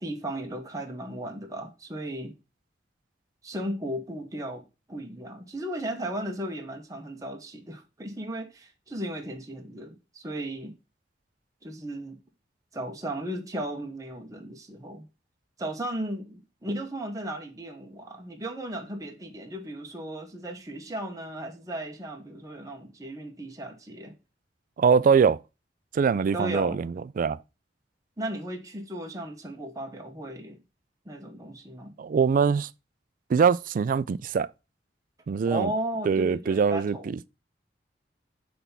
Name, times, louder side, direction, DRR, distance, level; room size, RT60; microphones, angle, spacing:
voice 1, 0.0-2.4 3.4-10.7 11.6-12.2 12.7-15.0 15.6-24.1 26.3-26.9 28.2-30.6 31.1-31.9 35.5-37.1, right 1 dB, 20° right, 0.9 m, -35 dB
voice 2, 24.8-25.4 25.9-27.4 32.0-32.7 33.3-34.5 35.3-35.7 36.1-37.3, right 6 dB, 50° right, 0.3 m, -23 dB
6.1 x 3.4 x 5.6 m
head